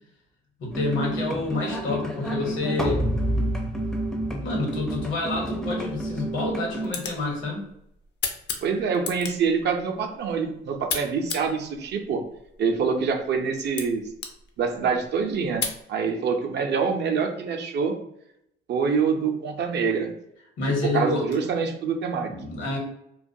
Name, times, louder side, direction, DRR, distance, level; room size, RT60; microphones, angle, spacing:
voice 1, 0.6-3.0 4.4-7.6 20.6-21.3 22.3-22.8, left 2 dB, 75° left, 0 dB, 1.0 m, -28 dB
sound 1, 0.7-6.9, right 1 dB, 5° left, 0.4 m, -29 dB
sound 2, 5.7-15.8, left 5 dB, 60° left, 0.5 m, -37 dB
voice 2, 8.6-12.2 12.6-14.0 14.6-18.0 18.7-20.1 20.8-22.3, right 5 dB, 60° right, 4 dB, 0.5 m, -25 dB
2.3 x 2.2 x 2.6 m, 0.77 s
cardioid pair, 90°, 20 cm